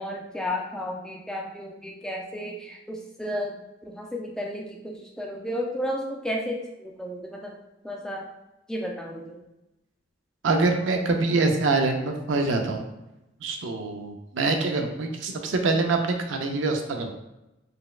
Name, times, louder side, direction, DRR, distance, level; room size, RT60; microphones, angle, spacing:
voice 1, 0.0-7.6 7.8-8.3 8.7-9.4, equal, 5° left, -1 dB, 0.4 m, -33 dB
voice 2, 10.4-12.9 13.4-17.1, right 3 dB, 80° right, 4 dB, 0.5 m, -25 dB
4.1 x 2.1 x 2.3 m, 0.95 s
head